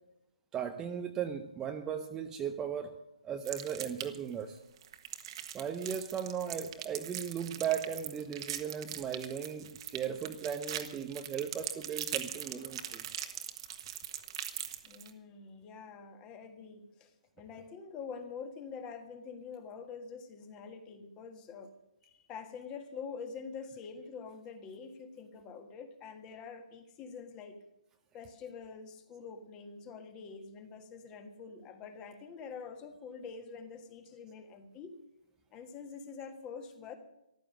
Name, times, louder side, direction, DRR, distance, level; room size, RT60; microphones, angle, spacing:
voice 1, 0.5-3.0 3.2-4.6 5.5-13.0, right 8 dB, 10° right, 5 dB, 0.6 m, -37 dB
sound 1, 3.4-4.3 4.8-15.1, right 10 dB, 40° right, 1.3 m, -41 dB
voice 2, 14.8-21.7 22.0-27.6 28.1-35.0 35.5-37.0, left 5 dB, 20° left, 7 dB, 1.6 m, -46 dB
14.5 x 12.0 x 6.4 m, 0.89 s
hypercardioid pair, 150°, 4 cm